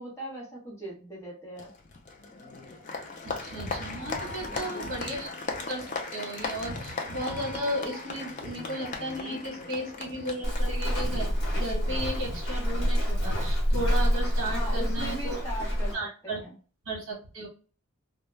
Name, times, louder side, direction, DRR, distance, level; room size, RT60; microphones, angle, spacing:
voice 1, 0.0-1.7 4.2-4.9 14.4-15.9 16.2-16.5, equal, 10° left, -5 dB, 0.9 m, -39 dB
Applause, 1.6-11.7, left 3 dB, 35° left, 0.4 m, -38 dB
voice 2, 3.2-5.3 5.6-5.9 6.1-15.4 15.9-16.4 16.9-17.5, right 1 dB, 65° right, -1 dB, 1.0 m, -34 dB
Walk footsteps, 10.4-15.9, equal, 50° left, 0.9 m, -27 dB
2.1 x 2.1 x 3.1 m, 0.38 s
head